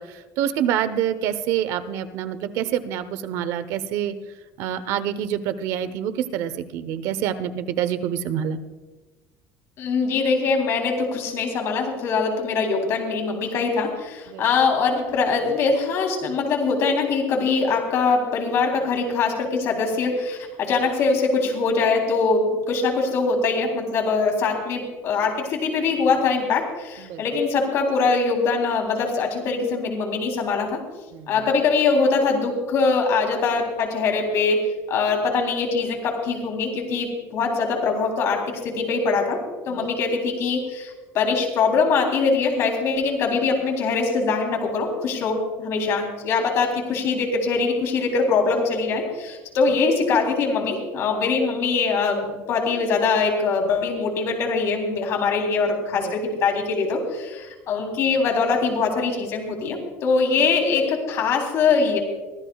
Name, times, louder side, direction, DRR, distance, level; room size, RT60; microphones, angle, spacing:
voice 1, 0.0-4.1 4.6-8.6 14.3-14.5 27.0-27.2 31.1-31.5 39.7-39.9 55.9-56.2, right 10 dB, 65° right, 11 dB, 1.0 m, -27 dB
voice 2, 9.8-30.8 31.3-34.6 34.9-39.4 39.7-62.0, left 4 dB, 45° left, 1 dB, 3.6 m, -22 dB
24.0 x 15.0 x 2.4 m, 1.2 s
cardioid pair, 165°, 6 cm